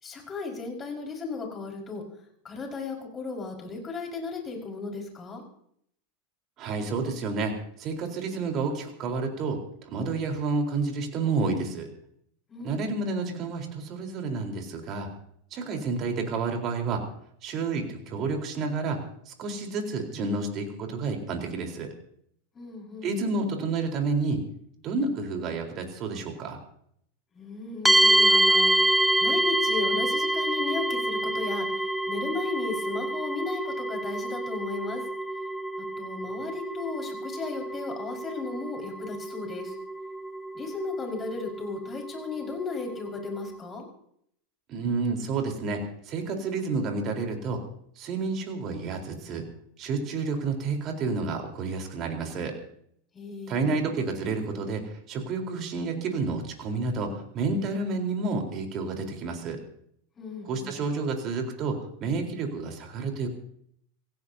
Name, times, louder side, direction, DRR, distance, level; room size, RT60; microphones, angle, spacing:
voice 1, 0.0-2.0 2.4-5.4 12.5-13.0 22.5-23.2 27.3-35.0 36.0-39.7 40.5-43.9 53.1-53.8 60.2-60.9, left 4 dB, 25° left, 0 dB, 5.2 m, -35 dB
voice 2, 6.6-7.5 7.8-11.9 12.6-15.1 15.5-17.0 17.4-19.0 19.3-21.9 23.0-24.4 24.8-26.6 44.7-47.6 48.0-49.4 49.8-52.5 53.5-54.8 55.1-59.6 60.4-63.3, right 4 dB, 40° right, 3 dB, 4.1 m, -30 dB
sound 1, 27.9-43.6, right 1 dB, ahead, 0.9 m, -27 dB
26.5 x 16.5 x 2.8 m, 0.68 s
figure-of-eight pair, 85°, 0 cm